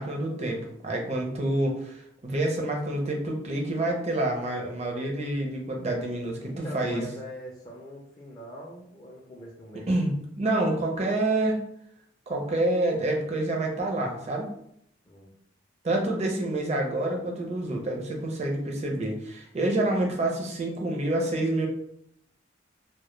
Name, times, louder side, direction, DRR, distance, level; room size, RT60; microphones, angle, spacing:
voice 1, 0.0-7.0 9.9-11.6 12.3-14.5 15.8-21.7, right 1 dB, 35° right, 1 dB, 0.5 m, -28 dB
voice 2, 6.4-10.1 15.0-15.3, equal, 20° left, -3 dB, 0.4 m, -42 dB
2.1 x 2.1 x 3.0 m, 0.72 s
head